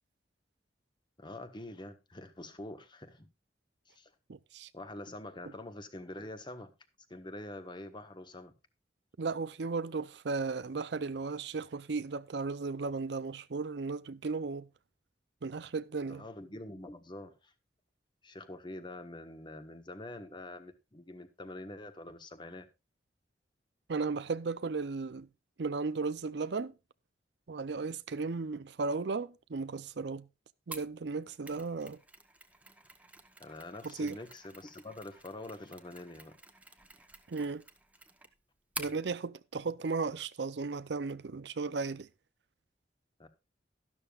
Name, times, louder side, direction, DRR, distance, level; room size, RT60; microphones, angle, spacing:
voice 1, 1.2-3.3 3.9-4.1 4.7-6.7 7.1-8.5 16.1-17.5 18.2-22.7 33.4-36.3 43.2-43.3, left 1 dB, 25° left, 1.3 m, -45 dB
voice 2, 4.3-4.7 9.2-14.7 15.4-16.2 23.9-25.3 25.6-26.7 27.5-30.3 30.7-32.0 33.8-34.2 37.3-37.6 38.8-42.1, right 4 dB, 65° right, 0.6 m, -35 dB
Mechanisms, 30.7-39.0, right 2 dB, 10° right, 1.0 m, -49 dB
12.5 x 12.0 x 2.4 m
head